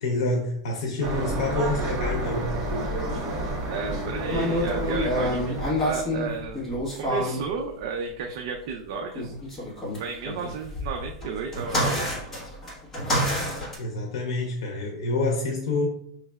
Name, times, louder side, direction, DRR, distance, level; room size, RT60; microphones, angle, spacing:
voice 1, 0.0-2.6 13.8-15.9, left 2 dB, 85° left, 3 dB, 0.7 m, -27 dB
sound 1, 1.0-6.2, right 1 dB, 30° right, 1.2 m, -30 dB
voice 2, 3.7-6.6 7.0-9.7 10.0-12.3, right 5 dB, 55° right, 2 dB, 0.4 m, -33 dB
sound 2, 4.3-7.4 9.1-13.8, equal, 10° left, 1.1 m, -28 dB
5.5 x 3.2 x 2.2 m, 0.70 s
supercardioid pair, 165°, 3 cm